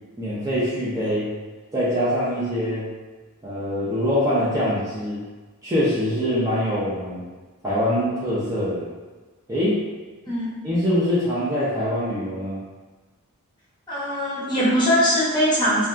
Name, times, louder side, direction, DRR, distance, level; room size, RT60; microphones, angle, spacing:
voice 1, 0.2-1.3 1.7-2.8 3.4-5.2 5.6-7.2 7.6-8.9 9.5-9.8 10.6-12.6, equal, 15° right, -10 dB, 0.5 m, -23 dB
voice 2, 10.3-10.6 13.9-15.9, equal, 20° left, -9 dB, 0.7 m, -21 dB
2.6 x 2.2 x 2.3 m, 1.3 s
head